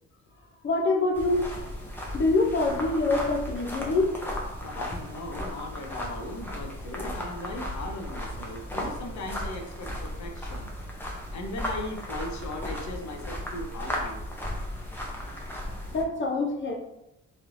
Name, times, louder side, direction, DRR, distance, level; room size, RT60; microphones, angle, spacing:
voice 1, 0.6-1.5 2.1-4.2 15.9-16.8, left 2 dB, 40° left, 2 dB, 0.7 m, -25 dB
sound 1, 1.1-16.0, left 1 dB, 5° left, 0.7 m, -35 dB
voice 2, 4.6-10.7 11.3-14.2, left 1 dB, 70° left, 3 dB, 0.8 m, -38 dB
3.3 x 3.0 x 2.6 m, 0.89 s
cardioid pair, 90°, 30 cm